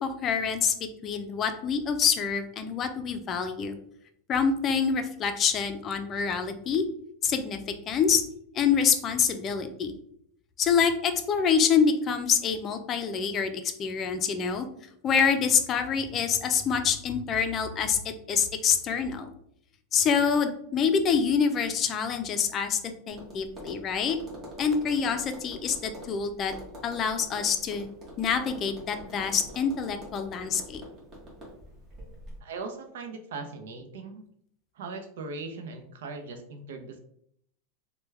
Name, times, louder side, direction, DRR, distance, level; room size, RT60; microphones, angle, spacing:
voice 1, 0.0-3.8 4.3-6.8 7.2-8.2 8.5-9.9 10.6-14.7 15.0-19.3 19.9-22.8 23.1-24.2 24.6-26.5 26.8-27.9 28.2-30.8, left 6 dB, 30° left, 8 dB, 0.4 m, -26 dB
Tap, 23.1-32.4, right 1 dB, 30° right, 1.1 m, -45 dB
voice 2, 32.4-34.3 34.7-37.0, right 3 dB, 85° right, 6 dB, 0.6 m, -39 dB
3.3 x 2.2 x 3.3 m, 0.70 s
supercardioid pair, 145°, 0 cm